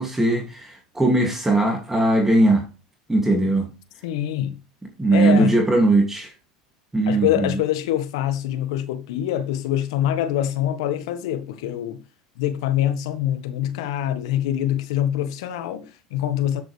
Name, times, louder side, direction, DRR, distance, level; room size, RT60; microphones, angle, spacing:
voice 1, 0.0-2.7 3.1-3.7 5.0-6.3 6.9-7.6, right 2 dB, 10° right, 2.6 m, -19 dB
voice 2, 4.0-4.6 5.1-5.6 7.1-12.0 12.4-16.6, left 11 dB, 75° left, 1.5 m, -24 dB
13.0 x 7.5 x 3.4 m
hypercardioid pair, 85°, 3 cm